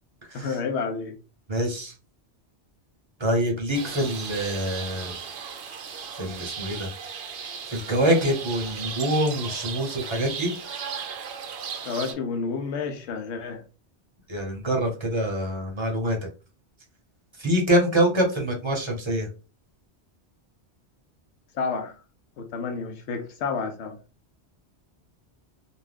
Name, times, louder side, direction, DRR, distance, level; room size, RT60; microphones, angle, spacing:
voice 1, 0.3-1.2 11.8-13.6 21.5-22.0 22.4-24.0, left 5 dB, 80° left, 0.8 m, -30 dB
voice 2, 1.5-1.9 3.2-5.1 6.1-6.9 7.7-10.5 14.3-16.2 17.4-19.3, right 1 dB, 30° right, 0.7 m, -25 dB
sound 1, 3.7-12.1, right 6 dB, 65° right, 0.8 m, -36 dB
2.5 x 2.2 x 3.3 m
omnidirectional pair, 1.1 m